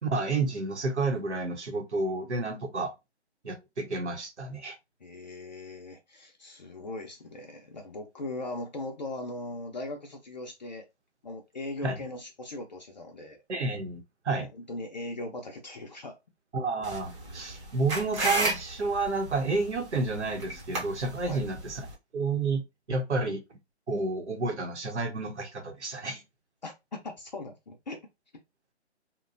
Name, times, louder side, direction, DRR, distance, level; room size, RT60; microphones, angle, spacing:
voice 1, 0.0-2.9 3.4-4.8 11.8-12.0 13.5-14.5 16.5-21.8 22.1-22.6 22.9-23.4 23.9-26.2, right 3 dB, 85° right, 0.9 m, -30 dB
voice 2, 5.0-10.9 11.2-13.4 14.4-16.2 21.2-21.4 26.6-28.0, left 2 dB, 40° left, 0.4 m, -39 dB
sound 1, 16.8-21.9, right 2 dB, 25° right, 0.9 m, -34 dB
2.8 x 2.2 x 2.5 m
figure-of-eight pair, 150°, 34 cm